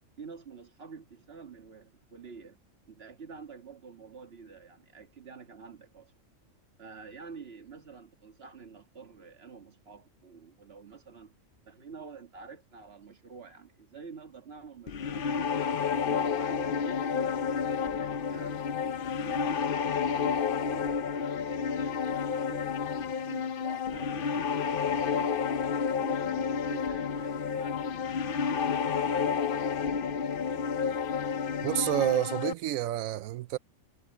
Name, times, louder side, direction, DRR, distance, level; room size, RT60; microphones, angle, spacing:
voice 1, 0.2-2.6 2.9-6.1 6.8-11.4 11.6-15.3 16.0-18.6 19.2-22.8 23.1-25.5 25.9-30.0, right 5 dB, 50° right, 2.0 m, -48 dB
sound 1, 14.9-32.5, left 6 dB, 50° left, 0.7 m, -30 dB
voice 2, 31.6-33.6, right 13 dB, 80° right, 1.0 m, -29 dB
omnidirectional pair, 1.4 m